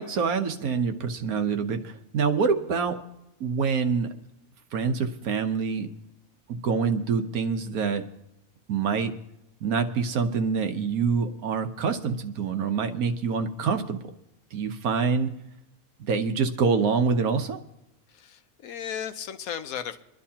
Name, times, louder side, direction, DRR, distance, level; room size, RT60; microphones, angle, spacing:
voice 1, 0.0-3.0 3.4-4.1 4.7-5.9 6.5-8.0 8.7-9.1 9.6-14.0 14.5-15.3 16.0-17.6, right 5 dB, 80° right, 7 dB, 1.4 m, -26 dB
voice 2, 18.1-20.0, left 8 dB, 75° left, 9 dB, 1.2 m, -35 dB
25.0 x 11.0 x 2.8 m, 0.88 s
omnidirectional pair, 1.5 m